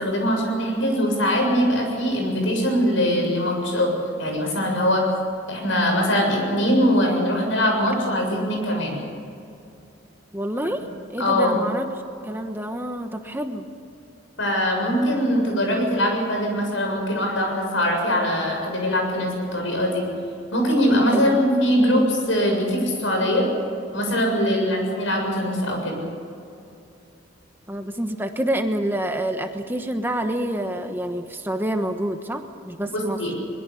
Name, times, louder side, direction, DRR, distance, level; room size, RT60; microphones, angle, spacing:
voice 1, 0.0-3.9 4.2-5.0 5.5-9.0 11.2-11.6 14.4-20.1 20.5-23.5 23.9-26.0 32.9-33.3, equal, 75° left, 2 dB, 7.4 m, -22 dB
voice 2, 10.3-10.9 11.1-13.7 21.1-21.4 24.4-24.6 27.7-33.2, right 1 dB, 10° right, 6 dB, 1.2 m, -27 dB
23.0 x 22.0 x 7.1 m, 2.6 s
head